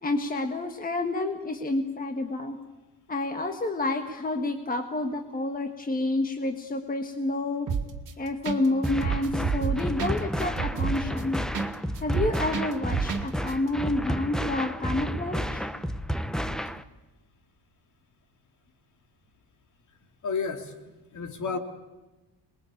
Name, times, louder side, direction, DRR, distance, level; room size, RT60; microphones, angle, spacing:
voice 1, 0.0-2.6 3.1-7.7 8.2-11.4 12.0-15.7, left 2 dB, 20° left, 5 dB, 1.7 m, -29 dB
sound 1, 7.7-8.1 8.4-8.6 8.8-11.7 12.0-13.2 13.5-13.6, right 6 dB, 50° right, 2.4 m, -28 dB
sound 2, 8.8-16.8, equal, ahead, 0.8 m, -31 dB
voice 2, 20.2-21.6, left 5 dB, 45° left, 6 dB, 3.1 m, -32 dB
27.0 x 21.5 x 8.6 m, 1.1 s
cardioid pair, 155°, 42 cm